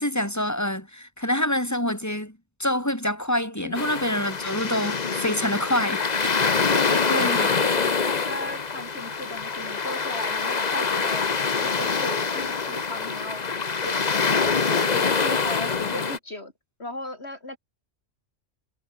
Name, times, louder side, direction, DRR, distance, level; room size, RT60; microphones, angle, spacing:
voice 1, 0.0-6.3 7.1-7.5, left 1 dB, 15° left, 6.9 m, -26 dB
sound 1, 3.7-16.2, left 5 dB, 35° left, 1.1 m, -25 dB
voice 2, 6.5-13.4 13.8-16.5 16.8-17.6, left 2 dB, 55° left, 4.8 m, -36 dB
omnidirectional pair, 1.3 m